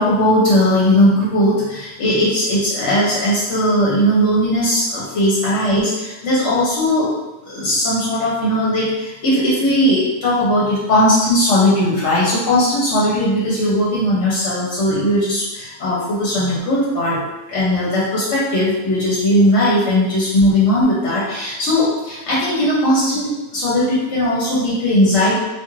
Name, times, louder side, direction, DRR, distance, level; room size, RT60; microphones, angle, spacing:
voice 1, 0.0-7.1 7.5-17.2 17.5-23.3 23.5-25.4, left 1 dB, 65° left, -7 dB, 1.0 m, -18 dB
2.5 x 2.4 x 3.0 m, 1.1 s
omnidirectional pair, 1.3 m